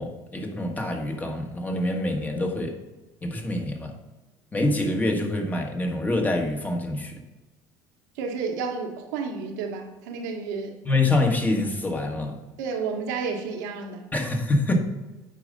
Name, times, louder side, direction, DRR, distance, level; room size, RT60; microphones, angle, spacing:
voice 1, 0.0-2.8 3.2-3.9 4.5-7.2 10.8-12.4 14.1-14.8, left 2 dB, 15° left, 3 dB, 1.5 m, -26 dB
voice 2, 8.1-10.8 12.6-14.1, right 5 dB, 90° right, 3 dB, 1.4 m, -31 dB
9.1 x 5.0 x 5.3 m, 1.1 s
supercardioid pair, 95°, 9 cm